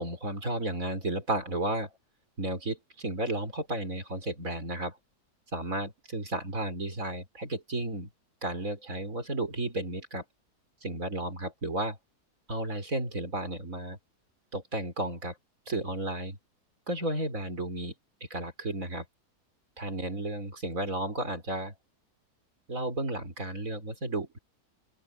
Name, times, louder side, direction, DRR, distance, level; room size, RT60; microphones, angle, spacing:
voice 1, 0.0-1.9 2.4-5.0 5.5-8.1 8.4-10.2 10.8-12.0 12.5-14.0 14.5-15.3 15.7-16.4 16.9-17.9 18.3-19.1 19.8-21.7 22.7-24.4, right 1 dB, 55° right, 5.3 m, -33 dB
open air
omnidirectional pair, 1.7 m